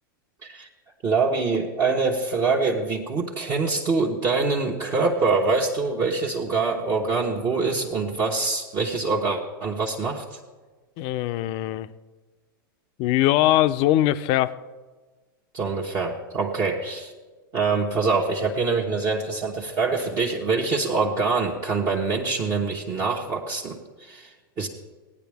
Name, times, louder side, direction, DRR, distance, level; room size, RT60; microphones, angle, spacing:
voice 1, 1.0-10.4 15.5-17.1 17.5-24.7, right 4 dB, 35° right, -3 dB, 1.2 m, -25 dB
voice 2, 11.0-11.9 13.0-14.5, left 14 dB, 45° left, 12 dB, 0.5 m, -21 dB
16.5 x 9.7 x 3.5 m, 1.3 s
hypercardioid pair, 115°, 12 cm